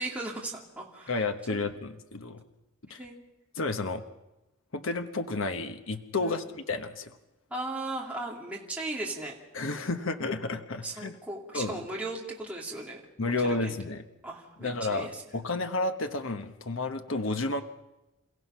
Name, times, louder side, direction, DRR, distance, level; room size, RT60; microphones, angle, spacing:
voice 1, 0.0-1.2 1.5-1.6 3.0-3.1 6.2-6.4 7.5-9.3 10.8-13.0 13.4-13.7 14.2-15.2, right 2 dB, 5° right, -3 dB, 2.6 m, -37 dB
voice 2, 1.1-2.4 2.9-3.0 3.6-4.0 4.7-7.2 9.5-11.2 11.5-11.8 13.2-14.0 14.6-17.6, left 3 dB, 65° left, 7 dB, 1.1 m, -31 dB
28.5 x 16.0 x 5.7 m, 0.97 s
head